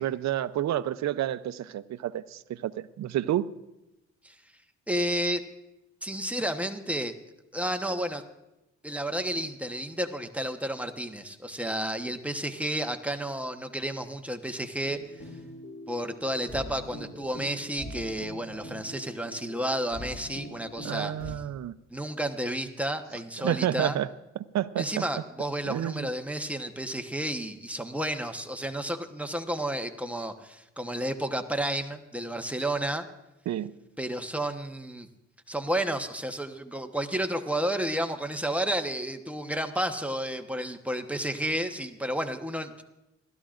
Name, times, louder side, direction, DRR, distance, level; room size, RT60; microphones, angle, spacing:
voice 1, 0.0-3.5 20.8-21.7 23.4-24.1 24.5-25.0 25.6-26.1 33.5-33.7, right 12 dB, 65° right, 14 dB, 0.7 m, -29 dB
voice 2, 4.9-5.4 6.0-7.1 7.5-8.2 8.8-15.0 15.9-21.3 21.9-24.0 24.8-33.1 34.0-35.1 35.5-42.8, right 1 dB, 5° right, 5 dB, 1.1 m, -31 dB
sound 1, 14.8-21.3, equal, 25° left, 7.3 m, -43 dB
29.0 x 13.0 x 2.5 m, 0.93 s
cardioid pair, 90°, 30 cm